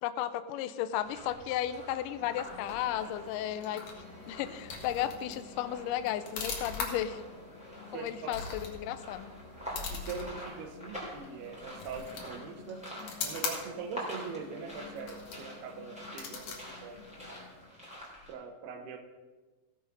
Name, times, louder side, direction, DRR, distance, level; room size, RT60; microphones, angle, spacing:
voice 1, 0.0-3.8 4.3-7.2 7.9-9.3, left 11 dB, 90° left, 11 dB, 1.9 m, -34 dB
sound 1, 0.9-18.3, equal, ahead, 2.9 m, -47 dB
sound 2, 2.2-17.7, left 5 dB, 60° left, 2.9 m, -43 dB
voice 2, 7.9-8.3 9.9-12.9 13.2-17.0 18.3-19.0, right 5 dB, 90° right, 5 dB, 3.1 m, -42 dB
15.5 x 7.2 x 5.3 m, 1.3 s
omnidirectional pair, 4.4 m